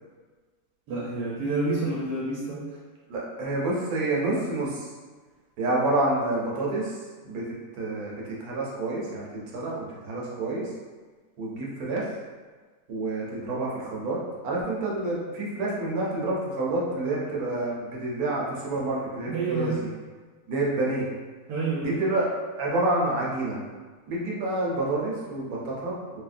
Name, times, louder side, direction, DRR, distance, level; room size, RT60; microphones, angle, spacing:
voice 1, 0.9-2.7 19.2-19.8 21.5-22.0, right 3 dB, 85° right, -4 dB, 1.2 m, -28 dB
voice 2, 3.1-4.9 5.6-6.9 7.2-7.4 7.7-9.3 9.5-10.7 11.4-12.1 12.9-19.9 20.5-21.1 21.8-22.3 22.6-23.6 24.1-26.2, right 2 dB, 70° right, -4 dB, 1.1 m, -28 dB
3.1 x 2.7 x 2.5 m, 1.4 s
omnidirectional pair, 1.8 m